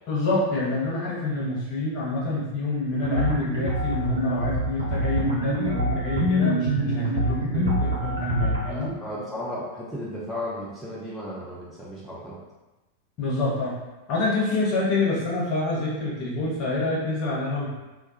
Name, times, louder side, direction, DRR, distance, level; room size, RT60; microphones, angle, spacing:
voice 1, 0.1-8.9 13.2-13.7 14.1-17.7, left 2 dB, 40° left, -5 dB, 0.8 m, -27 dB
sound 1, 3.0-8.7, equal, 70° right, 0.5 m, -25 dB
voice 2, 8.7-12.4, left 1 dB, ahead, -8 dB, 0.5 m, -34 dB
2.2 x 2.1 x 2.7 m, 1.1 s
figure-of-eight pair, 90°, 0 cm